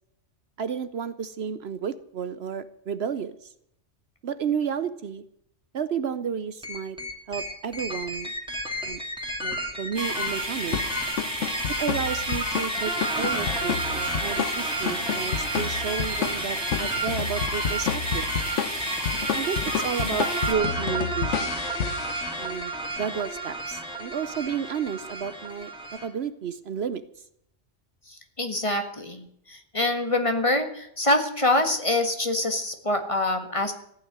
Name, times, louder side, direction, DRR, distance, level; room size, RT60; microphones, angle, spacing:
voice 1, 0.6-3.5 4.2-5.2 5.7-7.0 7.3-8.3 8.8-9.0 9.4-10.8 11.8-18.3 19.3-21.7 22.4-25.7 26.0-27.0, right 7 dB, 60° right, 14 dB, 0.9 m, -32 dB
sound 1, 6.6-26.1, right 1 dB, 5° right, 2.4 m, -32 dB
sound 2, 9.9-20.5, right 1 dB, 20° right, 1.7 m, -33 dB
sound 3, 10.7-22.7, left 7 dB, 80° left, 1.2 m, -31 dB
voice 2, 28.4-33.7, left 1 dB, 25° left, 7 dB, 1.7 m, -25 dB
15.0 x 9.3 x 9.4 m, 0.73 s
omnidirectional pair, 1.2 m